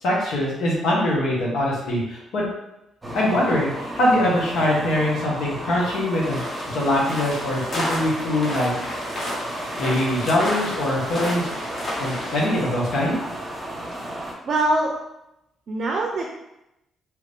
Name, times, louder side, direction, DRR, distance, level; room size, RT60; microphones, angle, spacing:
voice 1, 0.0-2.4 3.1-8.7 9.8-11.5 12.0-13.2, left 1 dB, 75° left, -4 dB, 1.0 m, -23 dB
sound 1, 3.0-14.3, right 1 dB, 15° right, 1.1 m, -33 dB
sound 2, 6.2-12.4, left 1 dB, 40° left, 1.2 m, -31 dB
voice 2, 14.4-14.9 15.7-16.3, right 2 dB, 55° right, 1 dB, 0.5 m, -22 dB
3.0 x 2.5 x 3.4 m, 0.87 s
cardioid pair, 90°, 0 cm